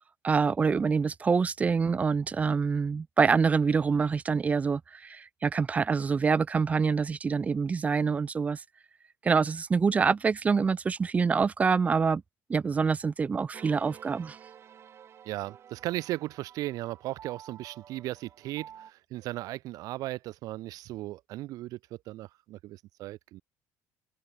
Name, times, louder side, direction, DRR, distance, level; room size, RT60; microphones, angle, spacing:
voice 1, 0.2-8.6 9.2-12.2 12.5-14.4, right 5 dB, 25° right, 0.6 m, -26 dB
sound 1, 13.5-18.9, right 9 dB, 45° right, 7.8 m, -51 dB
voice 2, 15.3-21.8 22.1-23.4, right 16 dB, 75° right, 2.0 m, -36 dB
cardioid pair, 140°, 6 cm